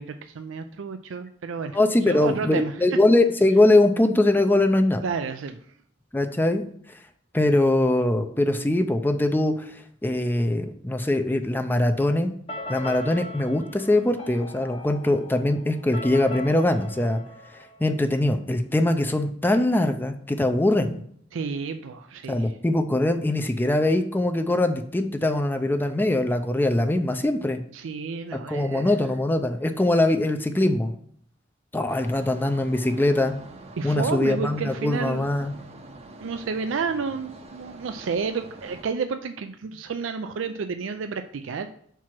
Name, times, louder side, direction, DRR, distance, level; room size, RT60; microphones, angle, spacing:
voice 1, 0.0-3.0 5.0-5.6 21.3-22.6 27.7-29.0 33.8-35.2 36.2-41.7, right 5 dB, 85° right, 8 dB, 0.4 m, -31 dB
voice 2, 1.7-5.0 6.1-6.6 7.3-9.7 10.0-12.3 12.7-17.2 17.8-21.0 22.3-27.6 28.5-30.9 31.7-33.3 33.8-35.5, left 1 dB, 10° left, 7 dB, 0.5 m, -22 dB
sound 1, 12.5-18.2, left 1 dB, 30° left, 0.8 m, -39 dB
sound 2, 31.9-38.9, right 2 dB, 35° right, 0.7 m, -45 dB
5.8 x 4.6 x 5.9 m, 0.64 s
head